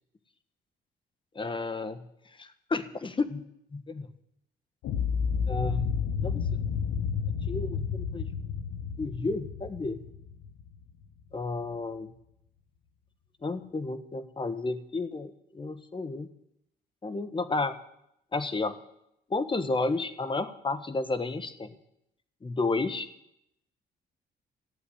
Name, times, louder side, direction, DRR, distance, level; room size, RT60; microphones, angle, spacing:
voice 1, 1.3-2.0 2.4-3.4 3.7-4.1 5.5-5.9 6.2-6.4 7.3-8.3 9.0-10.0 11.3-12.1 13.4-16.3 17.0-17.8 18.3-18.8 19.3-21.8 22.4-23.1, left 3 dB, 25° left, 12 dB, 1.4 m, -32 dB
sound 1, 4.8-10.9, left 6 dB, 85° left, 1.0 m, -31 dB
14.5 x 8.2 x 10.0 m, 0.78 s
cardioid pair, 90°, 20 cm